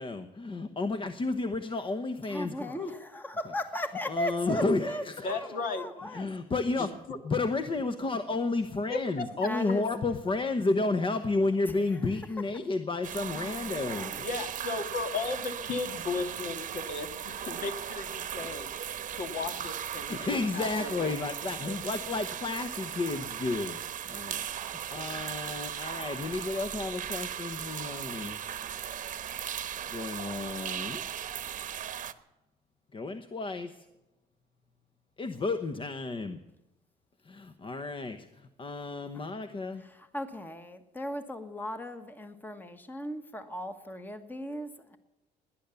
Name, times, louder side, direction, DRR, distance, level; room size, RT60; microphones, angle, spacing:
voice 1, 0.0-2.9 4.1-5.5 6.0-6.9 7.2-14.2 18.3-18.5 20.1-23.8 24.1-28.4 29.9-31.2 32.9-33.8 35.2-36.4 37.2-39.8, left 3 dB, 30° left, 8 dB, 1.0 m, -32 dB
voice 2, 2.3-6.3 9.4-9.9 11.7-11.8 13.4-14.2 39.8-45.0, left 1 dB, 10° left, 8 dB, 1.3 m, -37 dB
voice 3, 5.2-5.9 6.7-7.2 8.9-9.5 14.2-18.7 19.1-21.1, left 4 dB, 55° left, 6 dB, 2.0 m, -35 dB
sound 1, 13.0-32.1, right 9 dB, 50° right, 1.1 m, -37 dB
18.5 x 10.5 x 7.0 m, 1.0 s
cardioid pair, 110°, 17 cm